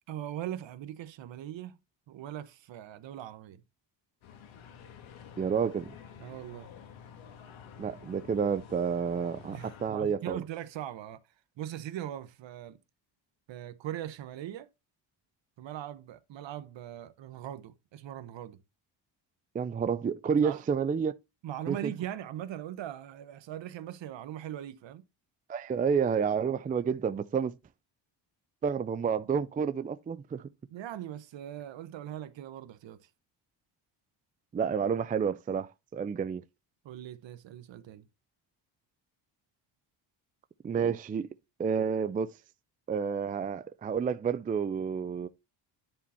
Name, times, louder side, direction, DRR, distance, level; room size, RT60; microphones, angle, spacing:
voice 1, 0.1-1.8 2.1-3.6 6.2-6.7 9.5-11.2 11.6-12.8 13.5-14.7 15.6-18.6 20.4-20.6 21.4-25.0 30.7-33.0 36.8-38.0, right 11 dB, 65° right, 1.1 m, -40 dB
sound 1, 4.2-9.9, left 7 dB, 75° left, 1.6 m, -50 dB
voice 2, 5.4-5.9 7.8-10.4 19.5-21.1 21.7-21.9 25.5-27.5 28.6-30.5 34.5-36.4 40.6-41.3 41.6-42.4 42.9-45.3, right 6 dB, 20° right, 0.3 m, -30 dB
10.0 x 4.3 x 4.2 m
cardioid pair, 100°, 47 cm